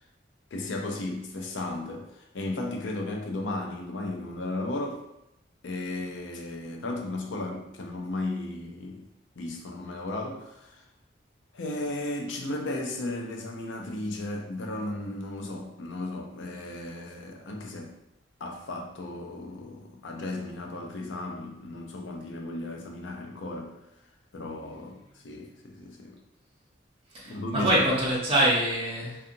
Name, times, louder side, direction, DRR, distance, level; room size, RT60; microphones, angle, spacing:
voice 1, 0.5-5.0 5.6-9.1 9.4-10.8 11.5-18.0 18.4-23.8 24.3-26.2 27.2-27.9, left 2 dB, 80° left, 0.5 m, -35 dB
voice 2, 27.1-29.2, right 1 dB, 30° right, 0.7 m, -24 dB
2.7 x 2.4 x 2.6 m
head